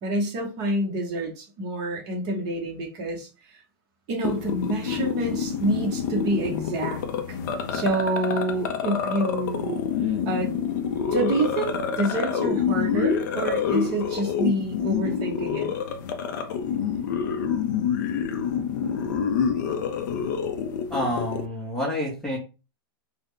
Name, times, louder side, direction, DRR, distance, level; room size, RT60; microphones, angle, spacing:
voice 1, 0.0-3.6 4.1-7.0 7.3-7.4 7.7-10.5 11.1-15.7, right 2 dB, 30° right, 0 dB, 0.9 m, -28 dB
sound 1, 4.2-21.5, left 7 dB, 45° left, 0.5 m, -27 dB
voice 2, 20.9-22.4, left 1 dB, 5° left, -5 dB, 0.7 m, -28 dB
3.9 x 2.1 x 3.2 m, 0.31 s
supercardioid pair, 170°, 13 cm